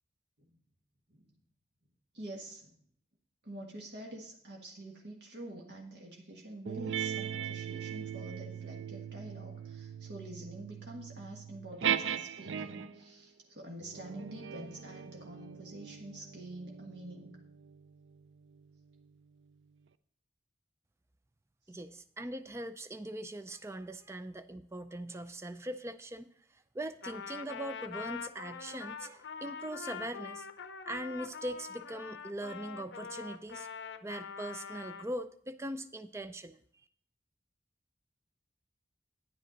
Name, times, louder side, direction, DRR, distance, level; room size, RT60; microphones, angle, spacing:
voice 1, 2.1-2.8 3.4-17.4 21.7-21.8, right 1 dB, 65° right, 0 dB, 1.5 m, -47 dB
sound 1, 6.7-13.1 13.8-18.7, right 8 dB, 85° right, 0.5 m, -39 dB
voice 2, 21.7-30.5 30.9-33.7 34.0-36.6, right 1 dB, 15° right, 10 dB, 0.4 m, -41 dB
Trumpet, 27.0-35.1, left 6 dB, 80° left, 0.6 m, -44 dB
10.0 x 10.0 x 4.0 m, 0.63 s
head